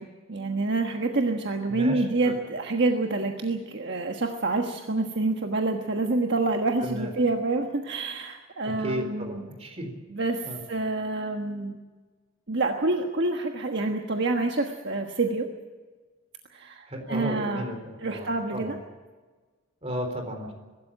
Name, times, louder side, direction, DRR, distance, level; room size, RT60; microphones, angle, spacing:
voice 1, 0.0-9.4 10.1-11.7 12.5-15.5 16.5-17.7 18.0-18.8, right 3 dB, 60° right, 3 dB, 1.4 m, -27 dB
voice 2, 1.7-2.4 6.8-7.1 8.7-9.9 10.4-10.6 16.9-18.8 19.8-20.5, equal, 30° right, 4 dB, 4.1 m, -34 dB
23.0 x 13.0 x 8.9 m, 1.3 s
head